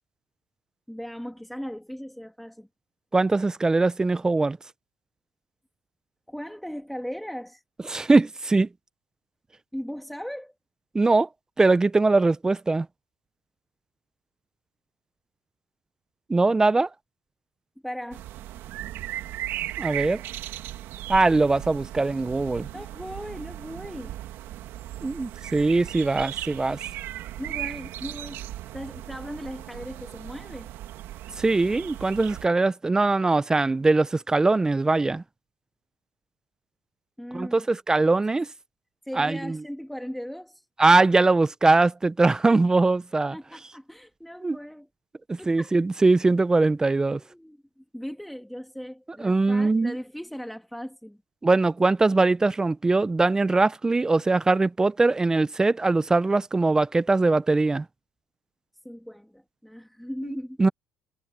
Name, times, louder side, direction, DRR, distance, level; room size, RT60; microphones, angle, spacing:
voice 1, 0.9-2.7 6.3-7.6 9.7-10.5 17.8-18.2 22.7-24.2 27.4-28.4 28.7-30.7 37.2-37.7 39.0-40.6 43.3-44.9 45.4-45.8 47.2-51.2 58.8-60.6, equal, ahead, 2.1 m, -38 dB
voice 2, 3.1-4.6 7.9-8.7 10.9-11.3 11.6-12.9 16.3-16.9 19.8-20.2 21.1-22.7 25.0-26.8 31.4-35.2 37.3-38.5 39.2-39.6 40.8-43.4 44.4-44.6 45.3-47.2 49.2-49.9 51.4-57.8 60.2-60.7, right 3 dB, 15° right, 0.7 m, -21 dB
sound 1, 18.1-32.5, right 13 dB, 70° right, 2.3 m, -37 dB
cardioid pair, 105°, 4 cm